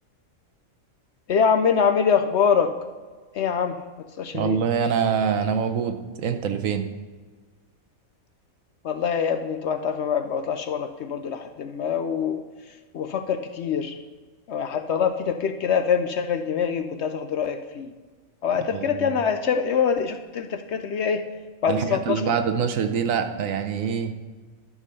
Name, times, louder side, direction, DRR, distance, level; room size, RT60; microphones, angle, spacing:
voice 1, 1.3-2.7 3.3-3.7 4.2-4.6 8.8-12.4 12.9-13.9 14.5-17.9 18.4-21.2 21.6-22.2, left 6 dB, 65° left, 7 dB, 0.8 m, -24 dB
voice 2, 4.3-6.9 18.7-19.2 21.7-24.1, right 7 dB, 75° right, 8 dB, 1.1 m, -25 dB
12.5 x 4.9 x 5.4 m, 1.4 s
omnidirectional pair, 1.4 m